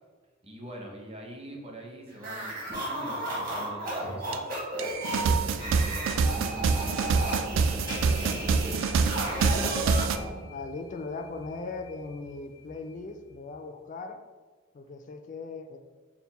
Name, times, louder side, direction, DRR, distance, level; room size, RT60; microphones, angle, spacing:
voice 1, 0.4-4.5 5.0-8.8, equal, 30° right, 0 dB, 0.7 m, -44 dB
sound 1, 2.2-10.4, right 1 dB, 45° right, 1.3 m, -34 dB
sound 2, 4.3-4.4 4.8-10.2, right 5 dB, 70° right, 0.3 m, -26 dB
sound 3, 7.9-13.5, left 4 dB, 85° left, 0.8 m, -48 dB
voice 2, 10.5-14.2 14.7-15.8, left 3 dB, 40° left, 7 dB, 0.3 m, -38 dB
4.2 x 2.1 x 4.1 m, 1.4 s
head